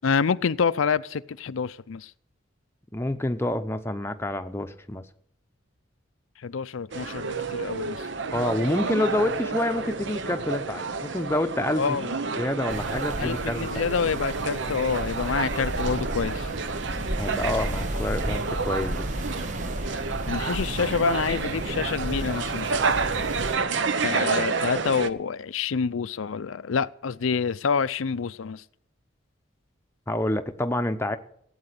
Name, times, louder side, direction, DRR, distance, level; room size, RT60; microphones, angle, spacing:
voice 1, 0.0-2.1 6.4-8.0 11.8-12.1 13.2-16.5 20.3-22.9 24.0-28.6, left 6 dB, 85° left, 0.5 m, -27 dB
voice 2, 2.9-5.0 8.3-12.0 12.3-13.8 17.2-19.1 30.1-31.2, left 1 dB, 10° left, 0.8 m, -28 dB
sound 1, 6.9-25.1, right 4 dB, 65° right, 0.8 m, -30 dB
sound 2, 12.7-23.6, right 1 dB, 40° right, 1.0 m, -33 dB
16.0 x 8.8 x 8.3 m
head